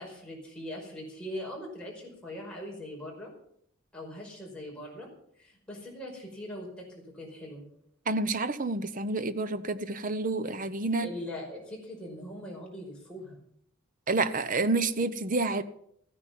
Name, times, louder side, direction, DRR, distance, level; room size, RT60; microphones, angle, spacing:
voice 1, 0.0-3.3 3.9-5.1 5.4-7.7 11.0-13.4, left 1 dB, 5° left, -3 dB, 5.2 m, -41 dB
voice 2, 8.1-11.1 14.1-15.6, right 3 dB, 40° right, 13 dB, 0.8 m, -29 dB
15.0 x 10.0 x 7.4 m, 0.70 s
head